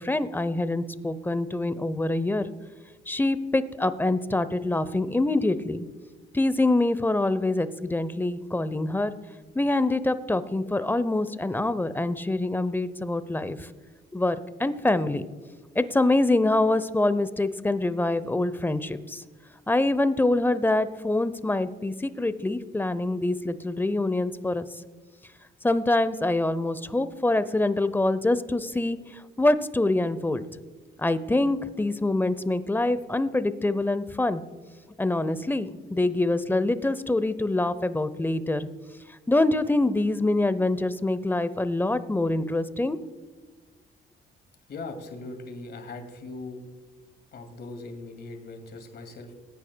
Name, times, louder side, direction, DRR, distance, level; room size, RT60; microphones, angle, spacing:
voice 1, 0.0-2.4 3.1-5.9 6.3-9.1 9.5-13.7 14.1-15.2 15.8-19.2 19.7-24.7 25.6-30.4 31.0-34.4 35.0-38.7 39.3-43.0, left 2 dB, 10° left, 14 dB, 0.6 m, -25 dB
voice 2, 44.7-46.6 47.3-49.3, left 3 dB, 55° left, 5 dB, 2.3 m, -39 dB
19.5 x 9.7 x 2.2 m, 1.4 s
cardioid pair, 90°, 20 cm